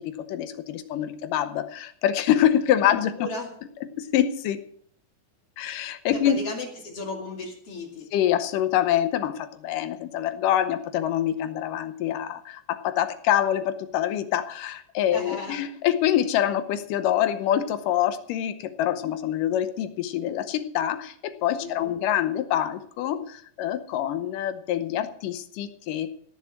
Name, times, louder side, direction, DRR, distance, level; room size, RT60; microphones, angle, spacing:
voice 1, 0.0-3.1 4.0-4.6 5.6-6.4 8.1-26.1, left 11 dB, 85° left, 10 dB, 2.5 m, -25 dB
voice 2, 3.2-3.5 6.1-8.1 15.1-15.6 21.6-22.0, left 2 dB, 45° left, 2 dB, 3.0 m, -35 dB
17.0 x 7.3 x 6.3 m, 0.63 s
omnidirectional pair, 3.8 m